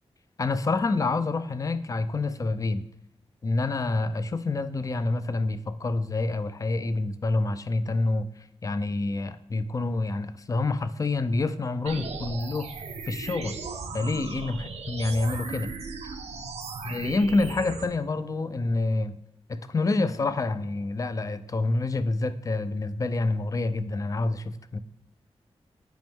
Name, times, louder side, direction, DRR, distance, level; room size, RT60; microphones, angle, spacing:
voice 1, 0.4-2.8 3.4-8.3 8.6-12.7 13.1-13.6 13.9-15.7 16.8-19.2 19.5-24.8, left 3 dB, 30° left, 12 dB, 0.4 m, -27 dB
sound 1, 11.9-17.9, right 4 dB, 85° right, 0.9 m, -37 dB
9.2 x 5.2 x 3.5 m, 0.87 s
wide cardioid pair, 140°, 11 cm